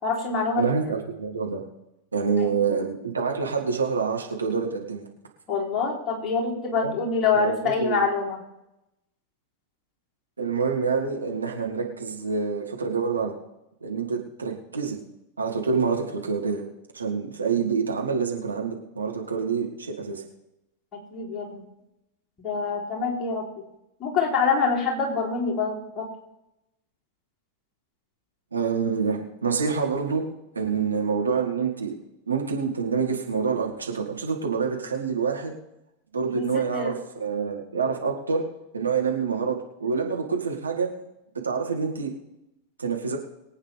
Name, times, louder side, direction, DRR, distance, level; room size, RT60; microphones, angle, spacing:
voice 1, 0.0-0.7 2.3-2.5 5.5-8.4 21.1-21.6 22.4-23.4 24.0-26.1 30.7-30.9 36.3-36.9, left 5 dB, 30° left, -3 dB, 3.3 m, -26 dB
voice 2, 0.6-1.6 2.1-5.1 6.8-7.0 7.3-8.0 10.4-13.3 13.8-15.0 15.4-16.6 16.9-20.2 28.5-30.3 30.5-31.9 32.3-35.5 36.1-38.4 38.7-40.9 41.4-42.1 42.8-43.2, right 5 dB, 75° right, 0 dB, 2.1 m, -27 dB
23.0 x 8.9 x 3.4 m, 0.90 s
figure-of-eight pair, 90°, 0 cm